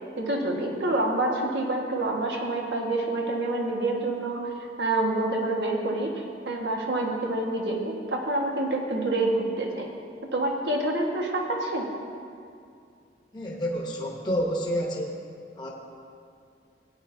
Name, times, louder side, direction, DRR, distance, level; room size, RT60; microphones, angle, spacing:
voice 1, 0.2-4.5 4.8-9.9 10.3-11.9, right 2 dB, 80° right, 0 dB, 1.4 m, -27 dB
voice 2, 13.3-15.1 15.6-15.7, equal, 25° left, -2 dB, 1.0 m, -29 dB
16.0 x 9.3 x 2.7 m, 2.3 s
head